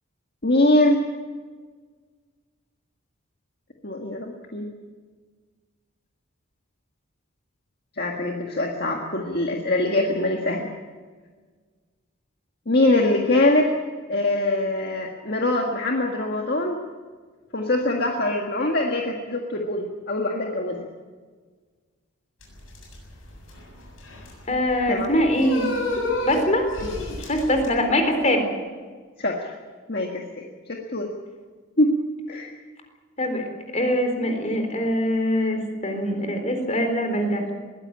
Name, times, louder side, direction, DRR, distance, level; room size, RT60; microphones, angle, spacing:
voice 1, 0.4-1.0 3.8-4.7 8.0-10.7 12.7-13.7 14.1-16.8 17.5-20.8 24.9-25.1 26.8-26.9 29.2-29.5 29.9-31.1 31.8-32.0 32.3-32.5, left 2 dB, 50° left, 1 dB, 1.8 m, -23 dB
sound 1, 22.4-27.7, left 2 dB, 75° left, 7.5 m, -31 dB
voice 2, 24.5-25.7 26.2-26.7 27.3-28.5 33.2-33.4 33.7-37.4, left 1 dB, 35° left, 5 dB, 4.0 m, -23 dB
21.5 x 16.0 x 8.8 m, 1.5 s
head